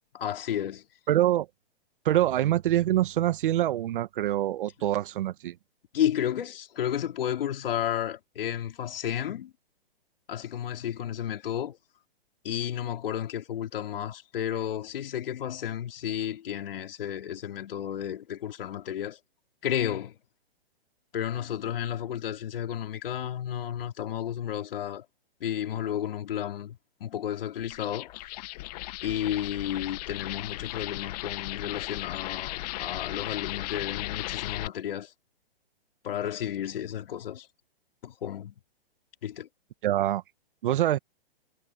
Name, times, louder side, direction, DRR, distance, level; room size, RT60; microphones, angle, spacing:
voice 1, 0.2-0.8 5.9-9.5 10.3-11.8 12.4-19.2 19.6-20.2 21.1-25.1 25.4-28.5 29.0-35.1 36.0-37.5 38.0-38.5 39.2-39.5, left 10 dB, 65° left, 4.2 m, -32 dB
voice 2, 1.1-1.5 2.0-5.5 39.8-40.2 40.6-41.0, right 13 dB, 55° right, 1.5 m, -25 dB
sound 1, 27.6-34.7, left 19 dB, 40° left, 1.2 m, -36 dB
hypercardioid pair, 140°, 30 cm